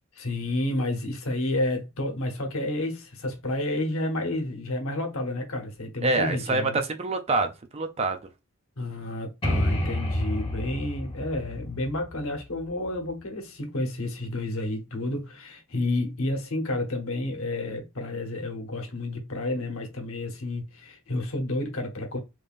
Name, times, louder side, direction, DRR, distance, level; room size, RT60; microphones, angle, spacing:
voice 1, 0.1-6.8 8.8-22.2, left 1 dB, 70° left, 1.0 m, -30 dB
voice 2, 6.0-8.2, right 2 dB, 30° right, 0.4 m, -26 dB
sound 1, 9.4-13.1, left 1 dB, 25° left, 1.4 m, -30 dB
3.5 x 3.2 x 2.5 m
head